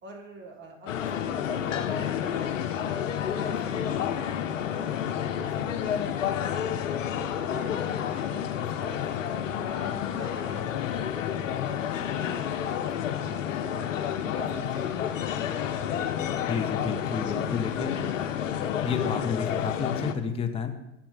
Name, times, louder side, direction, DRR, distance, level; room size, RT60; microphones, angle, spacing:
voice 1, 0.0-3.0 3.3-6.8 7.1-9.2 9.6-13.9 14.3-15.3, right 1 dB, 30° right, 2 dB, 1.8 m, -46 dB
sound 1, 0.9-20.1, left 9 dB, 80° left, 0.7 m, -30 dB
voice 2, 16.5-17.9 18.8-20.7, left 5 dB, 15° left, 6 dB, 0.7 m, -31 dB
7.8 x 4.4 x 5.6 m, 0.91 s
hypercardioid pair, 100°, 38 cm